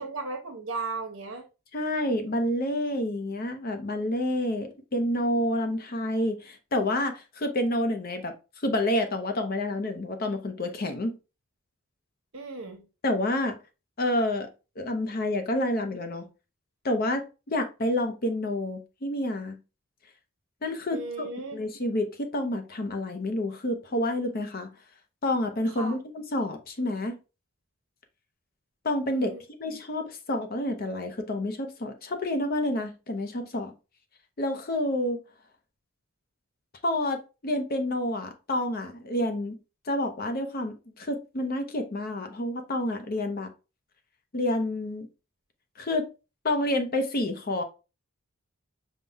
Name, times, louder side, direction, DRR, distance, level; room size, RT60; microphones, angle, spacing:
voice 1, 0.0-1.5 12.3-12.8 20.9-21.6 25.8-26.0 29.1-29.4, right 3 dB, 65° right, 1.0 m, -35 dB
voice 2, 1.7-8.3 8.6-11.2 13.0-13.6 14.0-14.5 14.8-16.3 16.8-19.6 20.6-24.7 25.2-27.2 28.8-33.7 34.4-35.2 36.8-39.6 39.9-43.5 44.3-45.1 45.8-46.1 46.4-47.6, left 1 dB, 45° left, 0.6 m, -29 dB
5.4 x 2.2 x 3.3 m
head